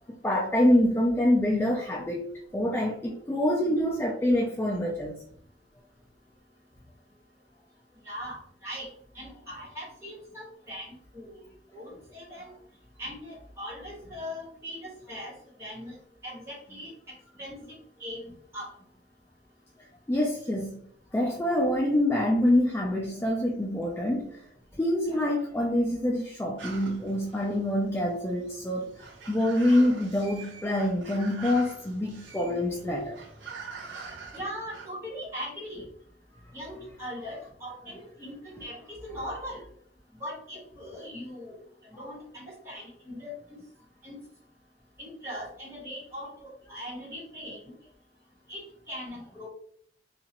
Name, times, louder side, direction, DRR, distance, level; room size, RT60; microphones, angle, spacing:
voice 1, 0.2-5.2 20.1-20.8 21.1-24.4 24.8-28.9 29.3-33.2, left 1 dB, 15° left, 0.3 m, -26 dB
voice 2, 8.0-8.9 9.1-11.4 11.7-12.5 13.0-15.3 15.6-16.0 16.2-16.9 17.4-17.6 18.0-18.7 25.1-25.2 34.3-35.8 36.5-39.6 40.1-41.5 41.9-43.3 44.0-44.2 45.0-47.6 48.5-48.6 48.9-49.5, equal, 15° right, 1.4 m, -40 dB
sound 1, 26.6-34.9, right 5 dB, 85° right, 0.7 m, -45 dB
2.8 x 2.4 x 2.9 m
head